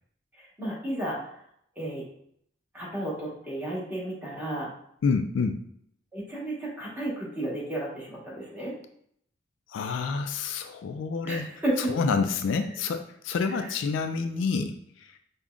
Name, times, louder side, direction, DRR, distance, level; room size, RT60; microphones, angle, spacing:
voice 1, 0.4-1.2 1.8-2.0 2.7-4.7 6.1-8.7 11.2-11.9 13.5-13.7, right 1 dB, 10° right, -7 dB, 1.2 m, -32 dB
voice 2, 5.0-5.6 9.7-11.5 11.9-14.7, left 5 dB, 80° left, 7 dB, 0.3 m, -28 dB
5.1 x 2.1 x 2.4 m, 0.68 s
head